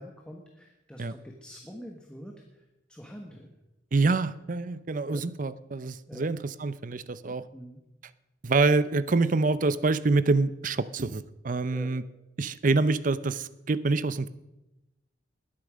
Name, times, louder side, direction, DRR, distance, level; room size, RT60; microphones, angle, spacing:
voice 1, 0.0-3.5 5.1-5.2 6.1-6.3 7.3-7.8 11.7-11.9, equal, 5° left, 1 dB, 1.3 m, -45 dB
voice 2, 3.9-7.4 8.4-12.0 12.4-14.3, right 3 dB, 45° right, 16 dB, 0.6 m, -26 dB
20.0 x 8.6 x 6.3 m, 0.96 s
head